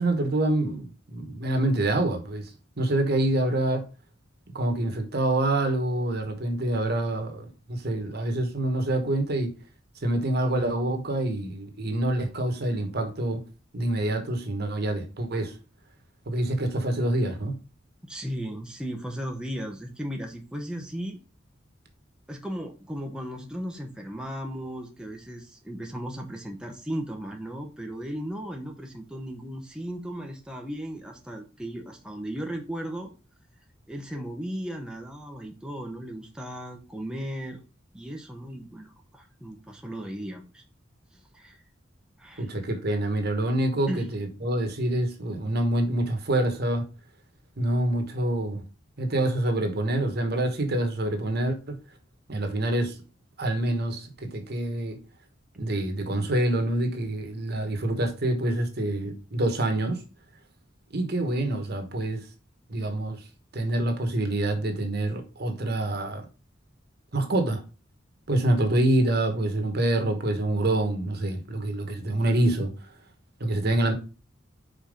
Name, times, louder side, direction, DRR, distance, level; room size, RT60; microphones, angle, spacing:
voice 1, 0.0-2.5 2.8-3.8 4.5-9.5 10.0-13.4 13.7-15.6 16.3-17.5 42.4-46.8 47.6-48.6 49.0-51.7 52.3-53.0 53.4-55.0 55.6-60.0 60.9-62.3 62.7-63.2 63.5-66.2 67.1-67.6 68.3-72.7 73.4-73.9, right 1 dB, 55° right, 1.4 m, -26 dB
voice 2, 18.0-21.2 22.3-33.1 33.9-37.6 37.9-40.6 41.1-41.6 42.2-42.5 43.9-44.1, equal, 5° right, 0.8 m, -36 dB
5.3 x 4.3 x 5.2 m
head